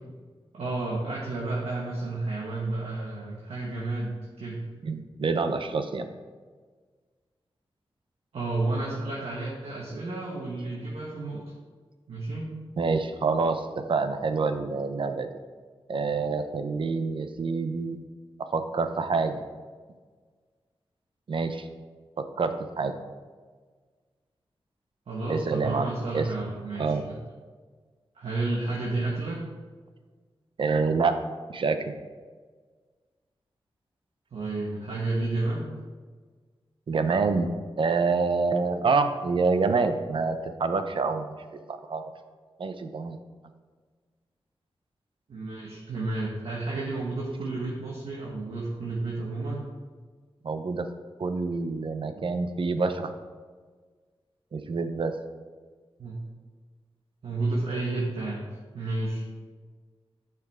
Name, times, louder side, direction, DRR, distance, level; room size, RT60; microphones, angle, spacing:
voice 1, 0.5-4.6 8.3-11.4 12.1-12.5 25.1-27.1 28.1-29.4 34.3-35.7 45.3-49.6 56.0-56.2 57.2-58.5 58.7-59.2, right 2 dB, 85° right, -5 dB, 1.5 m, -31 dB
voice 2, 4.8-6.1 12.8-15.3 15.9-18.0 18.5-19.4 21.3-21.7 22.2-22.9 25.3-25.9 26.1-26.3 26.8-27.0 30.6-31.2 31.5-31.9 36.9-37.5 37.8-41.4 41.7-42.0 42.6-43.2 50.4-50.9 51.2-53.1 54.5-55.1, right 4 dB, 60° right, 8 dB, 0.6 m, -27 dB
10.5 x 5.8 x 3.6 m, 1.5 s
wide cardioid pair, 150°, 10 cm